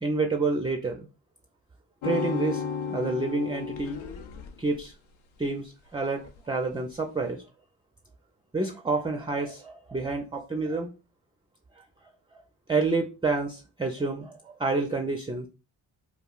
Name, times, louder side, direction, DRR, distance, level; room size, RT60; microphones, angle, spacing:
voice 1, 0.0-1.1 2.0-2.6 2.9-4.0 4.6-4.9 5.4-7.4 8.5-10.9 12.3-12.4 12.7-15.5, right 3 dB, 10° right, 4 dB, 0.3 m, -28 dB
sound 1, 2.0-4.8 6.3-6.4, left 6 dB, 75° left, 0.5 m, -33 dB
2.3 x 2.0 x 3.7 m, 0.33 s
cardioid pair, 50°, 47 cm